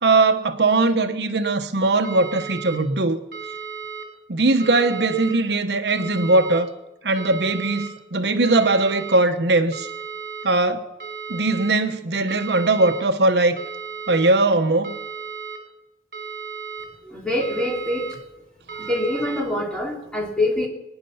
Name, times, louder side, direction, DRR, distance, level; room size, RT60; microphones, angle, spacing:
voice 1, 0.0-3.2 4.3-6.7 7.0-9.9 10.4-10.9 11.3-13.6 14.1-14.9, right 2 dB, 70° right, 7 dB, 1.0 m, -20 dB
sound 1, 2.0-2.8 3.3-4.0 4.6-5.3 5.9-6.6 7.2-7.9 8.4-9.2 9.7-10.5 11.0-11.7 12.3-13.0 13.6-14.3 14.8-15.6 16.1-16.9 17.4-18.1 18.7-19.4, right 6 dB, 55° right, 3.6 m, -34 dB
voice 2, 17.0-18.2 18.7-20.7, left 1 dB, 5° left, -1 dB, 2.9 m, -25 dB
25.0 x 9.8 x 5.7 m, 0.99 s
head